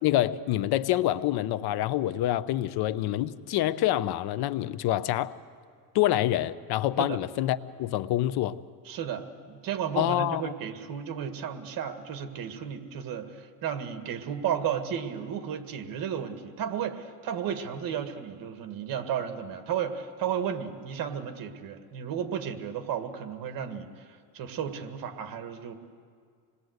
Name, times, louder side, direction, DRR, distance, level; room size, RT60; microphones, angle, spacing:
voice 1, 0.0-5.4 5.9-8.6 10.0-10.5, left 13 dB, 75° left, 15 dB, 0.8 m, -26 dB
voice 2, 8.9-25.7, right 8 dB, 60° right, 8 dB, 1.9 m, -33 dB
27.0 x 20.0 x 8.0 m, 2.1 s
cardioid pair, 135°, 39 cm